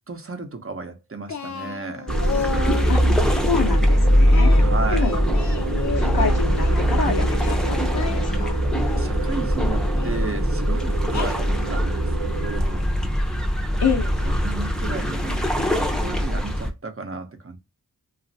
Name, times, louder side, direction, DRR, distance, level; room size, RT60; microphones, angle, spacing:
voice 1, 0.1-2.1 4.6-5.1 9.0-12.9 14.2-17.6, right 3 dB, 40° right, 0.8 m, -34 dB
Singing, 1.3-3.0 4.3-6.9 7.3-9.1 9.9-10.2 11.1-11.8, left 6 dB, 50° left, 0.6 m, -32 dB
sound 1, 2.1-16.7, equal, ahead, 0.6 m, -21 dB
sound 2, 2.1-12.6, right 7 dB, 80° right, 0.6 m, -33 dB
voice 2, 3.4-4.5 4.9-5.2 6.0-8.6 13.8-14.1, left 5 dB, 85° left, 0.8 m, -27 dB
3.0 x 2.5 x 2.6 m
wide cardioid pair, 50°, 37 cm